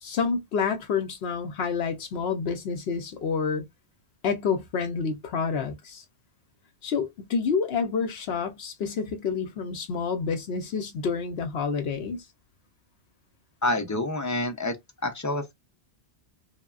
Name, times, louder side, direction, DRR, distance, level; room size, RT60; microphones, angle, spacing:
voice 1, 0.0-3.6 4.2-6.0 6.8-12.2, left 5 dB, 75° left, 0.8 m, -28 dB
voice 2, 13.6-14.8 15.0-15.5, left 2 dB, 25° left, 0.4 m, -27 dB
3.3 x 2.1 x 2.3 m
omnidirectional pair, 1.1 m